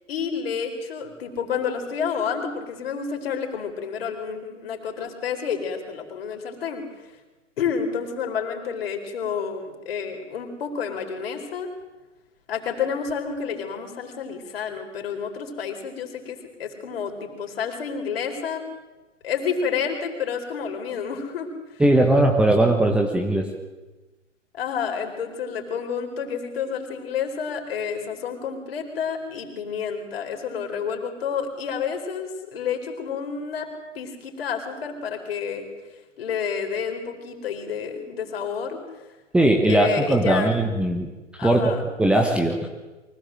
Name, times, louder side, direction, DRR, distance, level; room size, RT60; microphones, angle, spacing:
voice 1, 0.1-6.8 7.6-11.7 12.5-18.6 19.2-21.5 24.5-33.7 33.9-35.7 36.2-38.8 39.6-40.5 41.4-41.9, left 6 dB, 50° left, 4 dB, 4.6 m, -29 dB
voice 2, 21.8-23.5 39.3-41.1 41.4-41.6 42.0-42.6, right 1 dB, 5° right, 2 dB, 1.3 m, -19 dB
24.0 x 17.5 x 7.7 m, 1.2 s
figure-of-eight pair, 120°, 38 cm